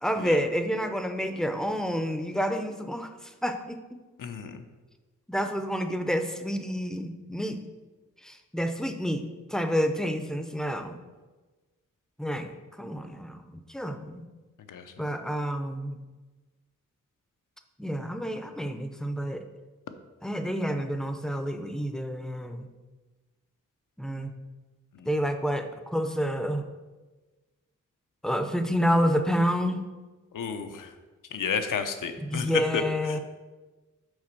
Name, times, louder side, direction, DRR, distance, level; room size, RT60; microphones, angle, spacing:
voice 1, 0.0-4.0 5.3-7.6 8.2-9.3 9.5-11.0 12.2-14.3 15.0-16.0 17.8-19.5 20.2-22.7 24.0-24.3 25.1-26.6 28.2-29.9 32.2-33.2, equal, ahead, 7 dB, 0.5 m, -29 dB
voice 2, 4.2-4.6 14.7-14.8 24.9-25.1 30.3-30.9 31.3-32.5 32.7-32.8 33.1-33.2, left 6 dB, 85° left, 8 dB, 0.7 m, -32 dB
6.3 x 4.1 x 6.0 m, 1.3 s
wide cardioid pair, 135°, 31 cm